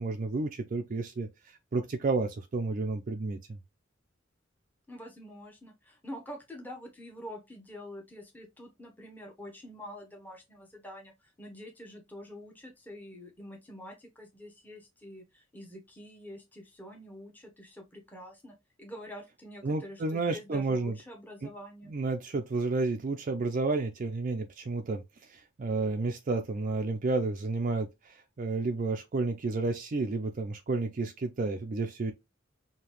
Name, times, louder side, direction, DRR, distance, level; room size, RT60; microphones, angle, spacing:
voice 1, 0.0-3.6 19.6-21.0 21.4-21.5 21.9-32.1, right 3 dB, 45° right, 0.4 m, -31 dB
voice 2, 4.9-21.9, equal, 10° left, 0.9 m, -46 dB
5.0 x 2.8 x 2.9 m
head